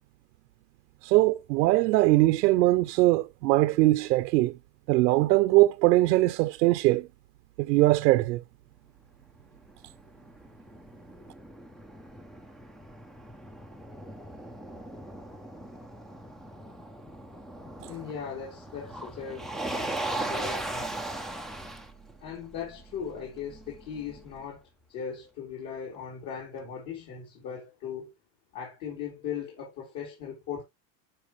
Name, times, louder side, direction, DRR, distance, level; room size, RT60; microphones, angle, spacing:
voice 1, 1.0-4.5 4.9-7.1 7.6-8.4, right 18 dB, 80° right, 0.8 m, -21 dB
Motor vehicle (road), 9.4-24.4, right 2 dB, ahead, 0.5 m, -39 dB
voice 2, 17.8-20.9 22.2-24.6 24.9-28.1 28.5-30.6, left 7 dB, 50° left, 4.5 m, -38 dB
12.0 x 5.2 x 3.1 m
supercardioid pair, 140°, 50 cm